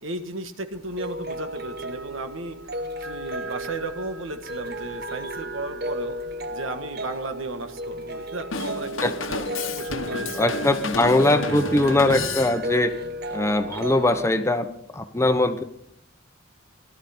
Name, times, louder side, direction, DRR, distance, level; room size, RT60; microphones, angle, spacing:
voice 1, 0.0-2.6 3.0-6.2 6.5-9.4 9.7-10.3, right 2 dB, 80° right, 8 dB, 1.4 m, -34 dB
sound 1, 0.7-14.3, right 1 dB, 50° right, 0.9 m, -34 dB
Drum kit / Drum, 8.5-12.9, left 3 dB, 80° left, 1.2 m, -31 dB
voice 2, 10.3-12.9 13.3-14.7 14.9-15.6, left 2 dB, 15° left, 8 dB, 0.9 m, -21 dB
18.0 x 12.0 x 4.3 m, 0.71 s
head